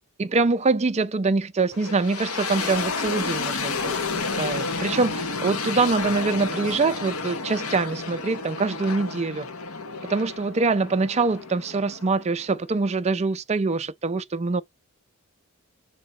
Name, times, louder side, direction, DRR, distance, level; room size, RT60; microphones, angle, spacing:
voice 1, 0.2-4.0 4.3-9.5 10.1-14.6, right 3 dB, 30° right, 0.5 m, -24 dB
sound 1, 1.7-12.7, left 4 dB, 70° left, 1.1 m, -31 dB
7.7 x 2.9 x 4.3 m
head